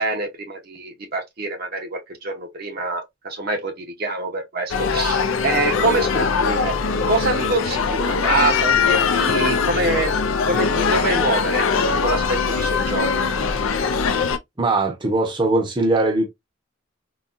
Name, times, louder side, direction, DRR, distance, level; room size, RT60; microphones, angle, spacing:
voice 1, 0.0-6.7 7.1-10.1 10.4-13.7, right 2 dB, 50° right, 0.8 m, -25 dB
sound 1, 4.7-14.4, left 5 dB, 85° left, 0.5 m, -21 dB
voice 2, 14.6-16.3, right 2 dB, 25° right, 0.7 m, -20 dB
3.9 x 2.2 x 2.5 m
head